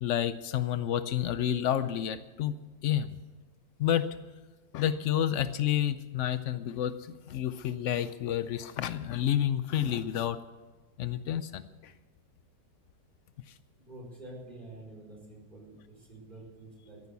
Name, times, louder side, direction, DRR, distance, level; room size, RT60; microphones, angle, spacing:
voice 1, 0.0-2.5 2.8-3.2 3.8-4.1 4.7-10.4 11.0-11.9, left 10 dB, 90° left, 13 dB, 0.6 m, -30 dB
voice 2, 13.9-17.0, right 1 dB, 25° right, -3 dB, 5.0 m, -48 dB
14.0 x 11.0 x 8.2 m, 1.3 s
omnidirectional pair, 2.0 m